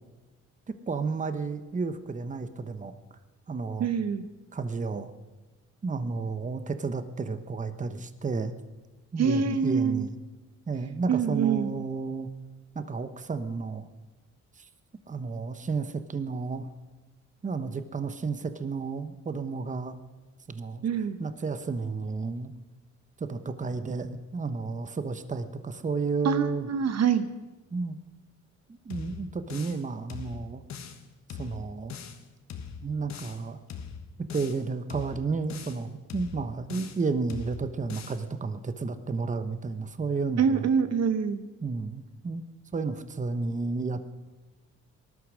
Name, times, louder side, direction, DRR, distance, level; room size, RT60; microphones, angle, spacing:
voice 1, 0.7-2.9 3.5-3.9 4.5-5.1 5.8-8.5 9.1-10.2 10.7-12.3 12.7-13.9 14.6-14.7 15.1-16.7 17.4-20.0 20.5-20.8 21.2-22.5 23.2-26.7 27.7-28.0 28.7-30.6 31.4-32.0 32.8-33.6 34.3-40.7 41.6-42.4 42.7-44.0, right 4 dB, 25° right, 10 dB, 1.0 m, -32 dB
voice 2, 3.8-4.2 9.2-10.1 11.1-11.7 20.8-21.2 26.2-27.2 40.4-41.4, right 6 dB, 60° right, 10 dB, 1.0 m, -25 dB
sound 1, 28.9-29.8 30.1-31.0 31.3-32.2 32.5-33.4 33.7-34.6 34.9-35.8 36.1-37.0 37.3-38.2, left 7 dB, 65° left, 1.5 m, -41 dB
18.5 x 12.0 x 6.3 m, 1.2 s
cardioid pair, 90°, 30 cm